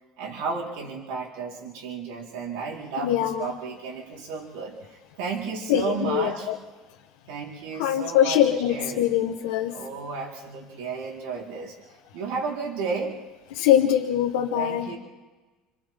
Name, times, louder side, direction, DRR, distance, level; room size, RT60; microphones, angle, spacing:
voice 1, 0.2-6.5 7.3-8.4 8.7-9.1 9.7-13.2 14.5-15.0, right 5 dB, 85° right, -2 dB, 4.6 m, -33 dB
voice 2, 3.0-3.5 5.7-6.6 7.7-9.8 13.5-14.9, left 11 dB, 90° left, 0 dB, 1.4 m, -23 dB
29.0 x 27.0 x 3.8 m, 1.3 s
supercardioid pair, 110°, 0 cm